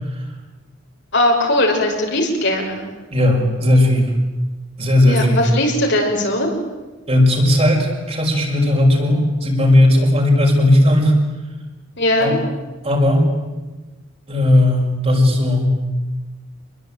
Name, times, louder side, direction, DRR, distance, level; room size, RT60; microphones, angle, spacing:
voice 1, 1.1-2.9 5.0-6.5 12.0-12.4, left 1 dB, 60° left, 1 dB, 6.1 m, -19 dB
voice 2, 3.1-4.1 4.8-5.4 7.1-11.1 12.2-12.4 12.8-13.3 14.3-15.8, left 1 dB, 30° right, 0 dB, 5.9 m, -16 dB
27.5 x 22.0 x 9.1 m, 1.2 s
head